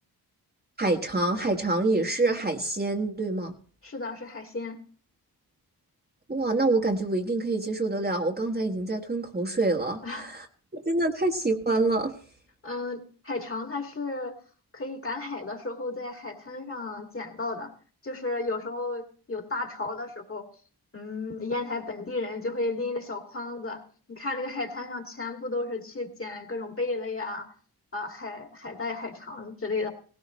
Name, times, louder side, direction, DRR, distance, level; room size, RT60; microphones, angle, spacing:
voice 1, 0.8-3.5 6.3-10.5 10.7-12.1, right 2 dB, 25° right, 3 dB, 1.5 m, -26 dB
voice 2, 3.8-4.7 10.0-10.3 12.6-14.4 14.7-17.7 18.0-19.0 19.3-20.4 20.9-23.8 24.1-27.5 27.9-29.9, left 3 dB, 35° left, 4 dB, 2.4 m, -33 dB
18.0 x 16.5 x 3.2 m, 0.41 s
cardioid pair, 85°, 40 cm